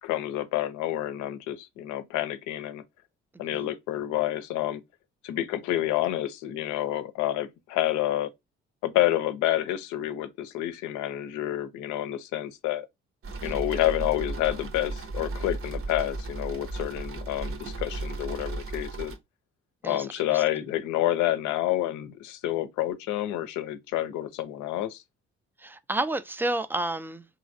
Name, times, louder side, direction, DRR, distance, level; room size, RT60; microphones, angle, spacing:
voice 1, 0.0-2.8 3.4-4.8 5.2-8.3 8.8-12.9 13.4-19.2 19.8-25.0, left 13 dB, 65° left, 0.6 m, -29 dB
sound 1, 13.2-19.2, right 3 dB, 40° right, 0.8 m, -35 dB
voice 2, 19.8-20.4 25.6-27.3, right 2 dB, 5° right, 0.4 m, -31 dB
3.0 x 2.8 x 2.5 m
hypercardioid pair, 45°, 32 cm